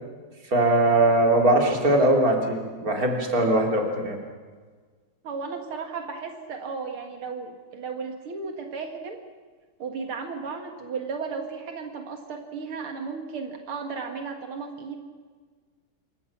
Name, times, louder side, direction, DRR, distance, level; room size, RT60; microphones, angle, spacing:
voice 1, 0.5-4.2, right 1 dB, 45° right, 2 dB, 3.5 m, -21 dB
voice 2, 5.2-9.2 9.8-15.0, right 5 dB, 85° right, 4 dB, 2.7 m, -34 dB
27.5 x 23.5 x 6.0 m, 1.5 s
omnidirectional pair, 2.3 m